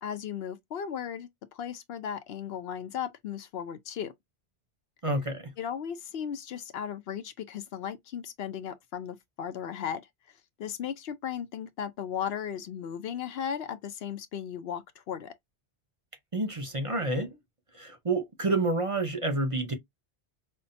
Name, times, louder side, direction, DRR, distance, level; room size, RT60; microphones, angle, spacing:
voice 1, 0.0-4.1 5.6-10.1 10.6-15.3, left 8 dB, 70° left, 0.8 m, -36 dB
voice 2, 5.0-5.5 16.3-17.3 17.7-19.7, right 2 dB, 35° right, 0.7 m, -29 dB
5.5 x 2.1 x 2.6 m
omnidirectional pair, 1.1 m